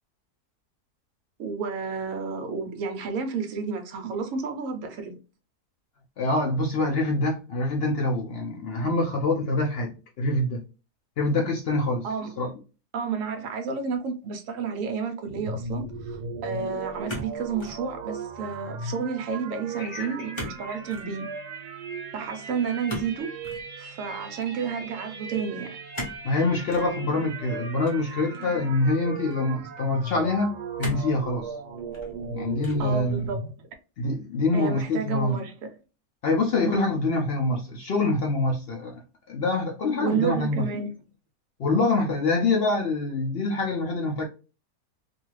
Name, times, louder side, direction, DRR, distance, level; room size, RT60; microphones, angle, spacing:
voice 1, 1.4-5.2 12.0-12.3 12.9-21.3 22.1-23.4 23.8-25.8 32.8-33.7 34.5-35.5 36.6-37.0 40.0-40.9, right 5 dB, 65° right, 0.9 m, -31 dB
voice 2, 6.2-10.6 11.2-12.1 12.4-12.5 19.8-20.3 20.7-20.8 26.2-31.5 32.3-33.3 34.0-35.4 36.2-39.0 39.3-40.7 41.6-44.2, left 2 dB, 70° left, 0.5 m, -25 dB
sound 1, 15.4-33.5, right 3 dB, 90° right, 1.2 m, -37 dB
sound 2, 17.1-17.8 18.2-18.6 20.3-20.6 20.9-21.1 22.9-23.7 25.9-26.3 26.7-26.9 27.8-28.6 29.3-29.4 30.8-31.2 31.8-32.3 32.6-33.0, left 1 dB, 25° left, 0.6 m, -37 dB
2.6 x 2.3 x 3.1 m
omnidirectional pair, 1.6 m